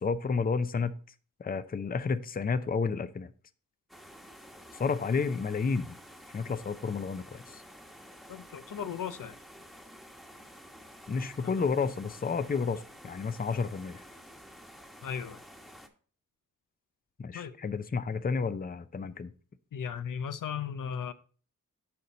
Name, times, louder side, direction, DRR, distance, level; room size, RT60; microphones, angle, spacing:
voice 1, 0.0-0.9 1.4-3.3 4.7-6.0 6.3-7.6 11.1-14.0 17.2-19.3, left 5 dB, 30° left, 0.5 m, -31 dB
sound 1, 3.9-15.9, equal, ahead, 1.2 m, -51 dB
voice 2, 8.3-9.4 11.4-11.5 15.0-15.4 17.3-17.5 19.7-21.1, left 7 dB, 80° left, 0.6 m, -36 dB
6.8 x 5.4 x 4.1 m
cardioid pair, 60°, 32 cm